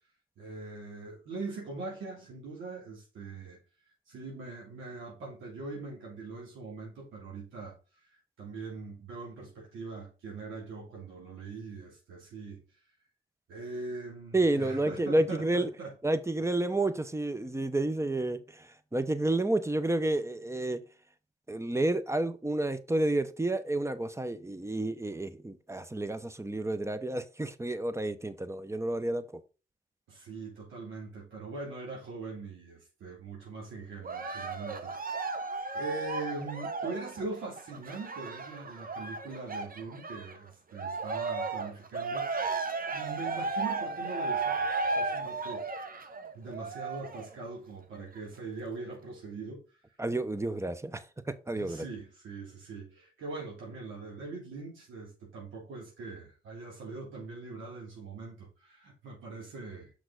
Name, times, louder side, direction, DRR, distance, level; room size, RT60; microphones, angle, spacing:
voice 1, 0.4-3.6 4.1-7.8 8.1-12.6 13.5-15.9 30.1-35.4 35.7-42.5 42.8-45.7 46.3-49.6 51.5-59.9, right 3 dB, 85° right, 3.0 m, -42 dB
voice 2, 14.3-15.7 16.0-20.8 21.5-29.4 50.0-51.9, right 2 dB, 15° right, 1.0 m, -30 dB
Cheering, 34.0-40.4 40.7-47.3 47.9-48.0, right 4 dB, 45° right, 1.2 m, -34 dB
6.4 x 6.0 x 3.9 m
supercardioid pair, 55°, 20 cm